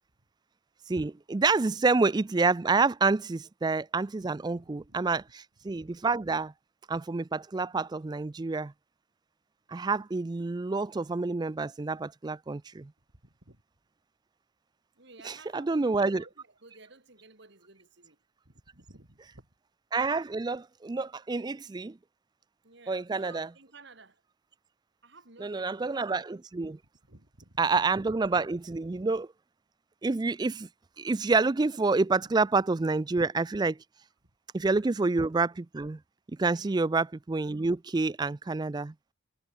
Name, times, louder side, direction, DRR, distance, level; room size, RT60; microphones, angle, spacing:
voice 1, 0.9-6.5 6.9-8.7 9.7-12.9 15.2-16.2 19.9-22.0 22.9-23.5 25.4-26.8 27.6-29.3 30.0-30.7 31.0-33.8 34.5-36.0 36.3-38.9, right 3 dB, 20° right, 0.3 m, -28 dB
voice 2, 4.2-5.0 13.2-13.6 14.9-18.2 18.4-19.5 22.6-24.2 25.0-26.2 27.0-27.9 34.2-34.3 34.8-34.9 36.5-36.7, right 3 dB, 60° right, 3.1 m, -55 dB
head